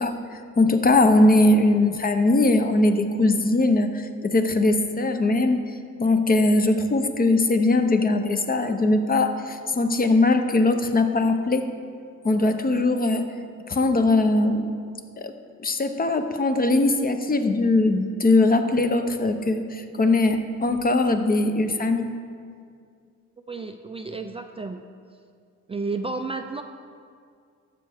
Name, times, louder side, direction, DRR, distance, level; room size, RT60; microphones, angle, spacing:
voice 1, 0.0-5.6 6.0-11.7 12.2-13.3 13.7-14.7 15.2-15.3 15.6-22.1, left 2 dB, 30° left, 7 dB, 0.7 m, -21 dB
voice 2, 23.5-24.8 25.7-26.6, right 3 dB, 20° right, 6 dB, 0.4 m, -31 dB
13.0 x 6.5 x 3.5 m, 2.2 s
cardioid pair, 90°, 30 cm